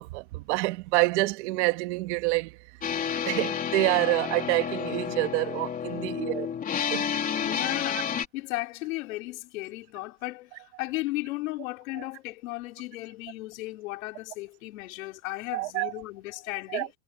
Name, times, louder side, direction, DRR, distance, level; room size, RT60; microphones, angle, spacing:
voice 1, 0.0-2.6 3.2-6.5 6.9-7.1 15.5-15.9 16.7-16.9, right 22 dB, 50° right, 1.8 m, -27 dB
sound 1, 2.8-8.2, left 8 dB, 20° left, 3.7 m, -30 dB
voice 2, 5.9-6.4 7.4-16.9, left 20 dB, 65° left, 4.3 m, -35 dB
supercardioid pair, 165°, 44 cm